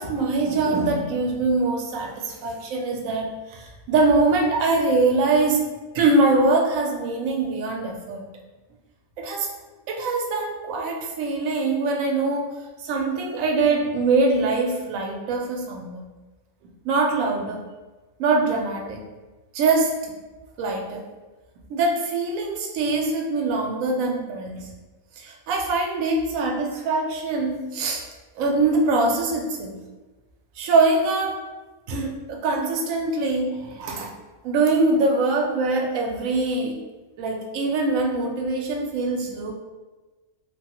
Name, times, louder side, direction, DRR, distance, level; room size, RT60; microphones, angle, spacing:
voice 1, 0.0-5.6 5.9-8.2 9.2-9.5 9.9-12.5 12.8-16.1 16.8-17.6 18.2-19.0 19.5-19.9 20.6-21.0 21.7-24.7 25.2-28.0 28.4-29.8 30.6-31.4 31.9-34.1 34.4-36.7 37.2-39.5, right 3 dB, 80° right, 1 dB, 1.0 m, -23 dB
3.2 x 2.2 x 2.9 m, 1.2 s
omnidirectional pair, 1.4 m